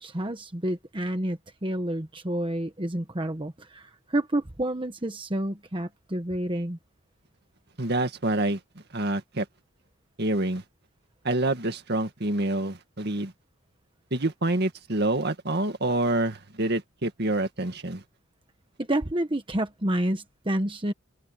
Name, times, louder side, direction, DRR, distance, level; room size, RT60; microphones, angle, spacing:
voice 1, 0.0-6.8 18.8-20.9, right 1 dB, 25° right, 1.2 m, -29 dB
voice 2, 7.8-8.6 8.9-9.5 10.2-10.6 11.2-13.3 14.1-18.0, right 2 dB, 55° right, 2.1 m, -27 dB
head